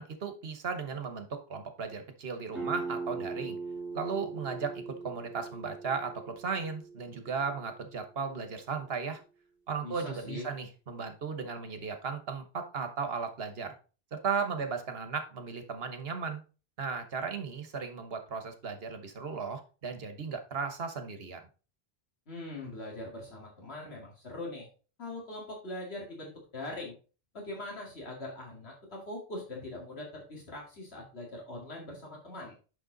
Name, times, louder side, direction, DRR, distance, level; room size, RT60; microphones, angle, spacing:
voice 1, 0.0-3.6 3.9-9.2 9.7-13.7 14.1-16.4 16.8-21.4, right 5 dB, 70° right, 7 dB, 1.3 m, -36 dB
sound 1, 2.5-7.9, right 4 dB, ahead, 3.0 m, -40 dB
voice 2, 9.8-10.5 22.3-24.7 25.0-26.9 27.3-32.5, left 2 dB, 85° left, -1 dB, 2.5 m, -42 dB
6.6 x 5.8 x 3.9 m, 0.34 s
omnidirectional pair, 1.0 m